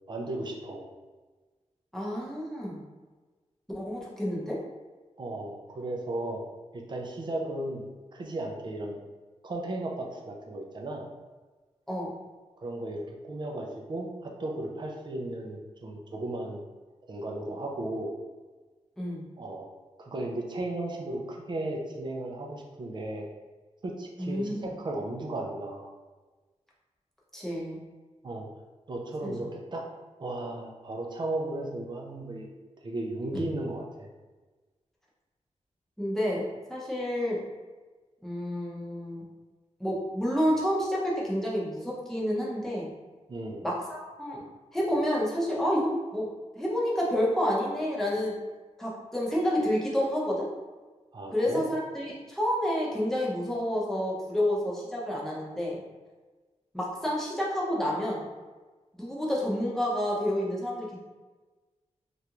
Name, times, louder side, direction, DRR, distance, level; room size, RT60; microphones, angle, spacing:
voice 1, 0.1-0.8 5.2-6.4 6.7-9.0 9.4-11.1 12.6-16.6 17.1-18.1 19.4-19.7 20.0-23.3 23.8-25.9 28.2-28.5 28.9-29.8 30.2-32.5 32.8-34.1 43.3-43.6 51.1-51.6, right 1 dB, 40° right, 0 dB, 0.5 m, -35 dB
voice 2, 1.9-2.8 3.7-4.6 11.9-12.1 19.0-19.2 24.2-24.7 27.3-27.8 29.2-29.3 36.0-36.4 36.7-37.4 38.2-39.2 39.8-42.9 43.6-44.4 44.7-46.3 46.5-48.4 48.8-50.5 51.3-55.7 56.7-58.3 58.9-61.0, equal, 5° left, -5 dB, 0.7 m, -29 dB
3.3 x 2.5 x 2.9 m, 1.3 s
wide cardioid pair, 140°, 12 cm